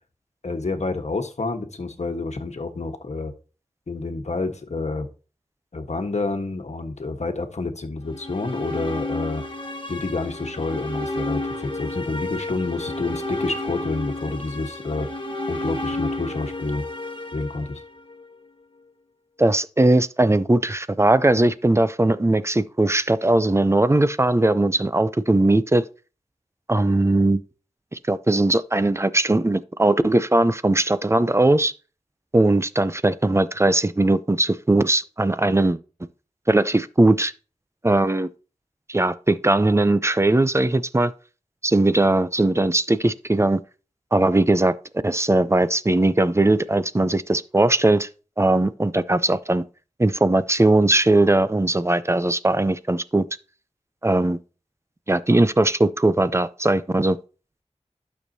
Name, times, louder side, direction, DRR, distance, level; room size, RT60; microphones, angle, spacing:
voice 1, 0.4-3.3 3.9-5.1 5.7-9.4 9.9-15.1 15.5-16.8 17.3-17.8, left 3 dB, 70° left, 1.3 m, -28 dB
sound 1, 8.0-18.2, left 2 dB, 45° left, 1.3 m, -31 dB
voice 2, 19.4-25.8 26.7-27.4 28.1-31.7 32.3-35.8 36.5-37.3 37.8-38.3 38.9-41.1 41.6-43.6 44.1-44.7 45.0-48.1 48.4-49.6 50.0-53.2 54.0-54.4 55.1-57.2, right 2 dB, 20° right, 0.6 m, -19 dB
12.0 x 6.4 x 2.8 m
wide cardioid pair, 55°, 12 cm